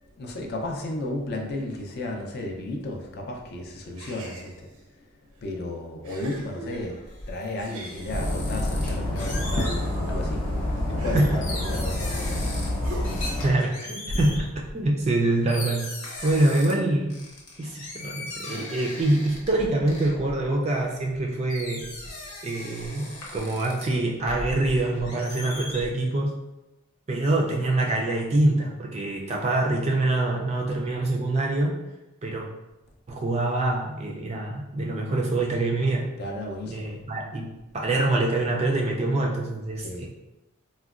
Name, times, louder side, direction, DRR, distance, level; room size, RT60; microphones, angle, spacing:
voice 1, 0.2-4.7 5.4-7.0 7.3-12.8 14.1-14.2 36.2-36.9 39.8-40.1, left 1 dB, 45° left, 1 dB, 0.4 m, -33 dB
sound 1, 4.0-4.8 5.5-5.6 6.0-7.1 7.6-9.0 9.3-11.9 12.8-13.4, right 1 dB, 80° right, 0.5 m, -41 dB
sound 2, 6.6-10.2 10.7-12.8 13.1-14.5 15.1-15.2 15.5-16.7 17.1-21.2 21.5-23.8 24.2-25.9, left 2 dB, 80° left, 0.9 m, -39 dB
Dog, 8.1-13.5, left 1 dB, 25° left, 0.8 m, -28 dB
voice 2, 13.4-14.4 14.7-15.8 16.2-17.2 17.6-21.8 22.4-26.3 27.1-31.8 32.2-32.4 33.1-36.0 36.7-37.5 37.7-40.1, right 2 dB, 30° right, 0 dB, 0.3 m, -25 dB
3.7 x 2.1 x 2.4 m, 0.97 s
head